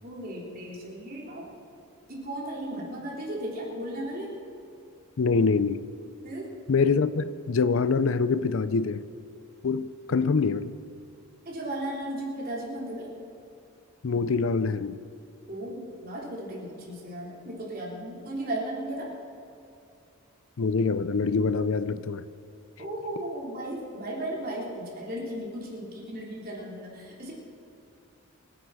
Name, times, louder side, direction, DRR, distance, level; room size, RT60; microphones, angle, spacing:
voice 1, 0.0-1.5 2.1-4.3 6.2-6.5 11.5-13.1 15.5-19.1 22.8-27.3, right 1 dB, 40° right, -3 dB, 3.3 m, -35 dB
voice 2, 5.2-5.8 6.7-9.0 9.6-10.8 14.0-15.0 20.6-22.2, left 4 dB, 60° left, 15 dB, 0.5 m, -25 dB
24.5 x 9.9 x 4.9 m, 2.6 s
head